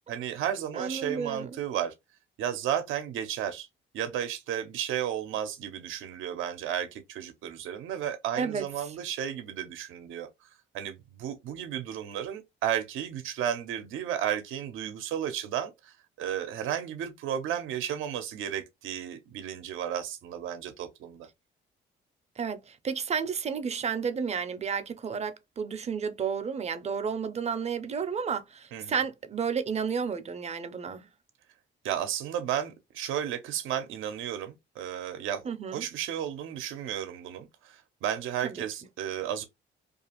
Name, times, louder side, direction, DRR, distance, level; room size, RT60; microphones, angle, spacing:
voice 1, 0.1-1.9 2.4-3.7 3.9-21.3 28.7-29.0 31.8-39.4, right 10 dB, 85° right, 0.5 m, -33 dB
voice 2, 0.7-1.6 8.4-8.6 22.4-31.1 35.4-35.9 38.4-38.5, right 6 dB, 35° right, 0.5 m, -32 dB
2.4 x 2.4 x 2.8 m
cardioid pair, 90°, 20 cm